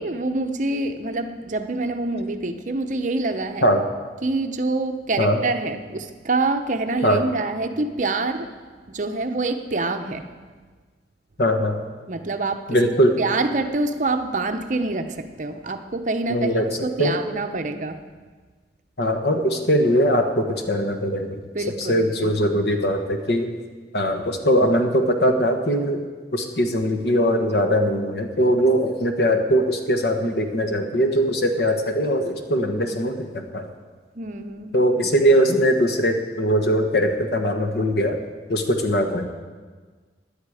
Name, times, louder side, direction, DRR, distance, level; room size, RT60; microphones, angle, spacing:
voice 1, 0.0-3.7 4.2-8.5 8.9-10.3 12.1-12.8 13.2-18.0 21.5-22.3 34.2-34.7, right 2 dB, 45° right, 7 dB, 0.8 m, -26 dB
voice 2, 11.4-11.8 12.7-13.1 16.3-16.6 17.0-17.2 19.0-21.4 21.8-23.5 23.9-26.0 26.3-33.7 34.7-38.2 38.5-39.3, equal, 65° left, 5 dB, 1.2 m, -21 dB
16.5 x 10.5 x 4.9 m, 1.4 s
head